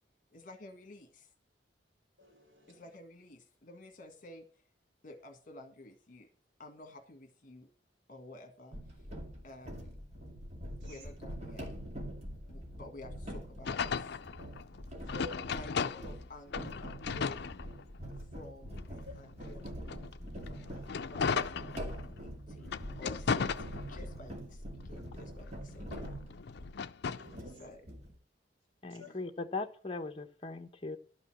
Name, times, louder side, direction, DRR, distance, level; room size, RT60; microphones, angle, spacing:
voice 1, 0.3-1.3 2.7-4.5 5.0-6.3 6.6-7.7 8.1-9.1 9.4-9.9 10.8-11.7 12.5-14.2 15.4-17.5 18.1-19.6 20.9-22.7 23.0-26.2 27.5-27.9 29.0-29.2, left 2 dB, 45° left, 5 dB, 1.6 m, -52 dB
voice 2, 2.2-2.9 10.8-11.1 15.0-15.6 19.1-19.2 20.6-21.2 23.0-23.1 27.1-27.7 28.9-29.1, left 1 dB, 75° right, -1 dB, 4.5 m, -50 dB
sound 1, 8.7-26.9 27.2-28.2, equal, 40° right, 2.2 m, -44 dB
sound 2, 13.7-16.2 16.5-18.2 18.7-22.2 22.6-24.3 24.7-27.4, left 6 dB, 65° left, 0.5 m, -36 dB
voice 3, 28.8-31.0, left 3 dB, 30° left, 6 dB, 1.0 m, -39 dB
12.0 x 5.5 x 7.5 m, 0.44 s
head